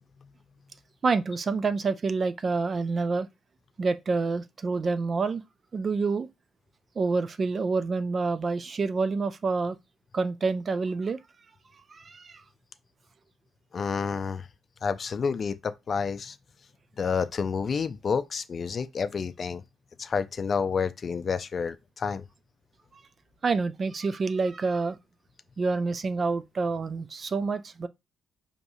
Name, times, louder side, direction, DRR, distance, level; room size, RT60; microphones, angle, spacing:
voice 1, 1.0-3.3 3.8-5.4 5.7-6.3 7.0-9.8 10.1-11.2 11.9-12.4 23.4-25.0 25.6-27.9, right 4 dB, 40° right, 0.4 m, -27 dB
voice 2, 13.7-14.5 14.8-16.4 17.0-19.6 20.0-22.3, left 5 dB, 45° left, 0.4 m, -29 dB
4.7 x 2.8 x 2.6 m
cardioid pair, 90°, 0 cm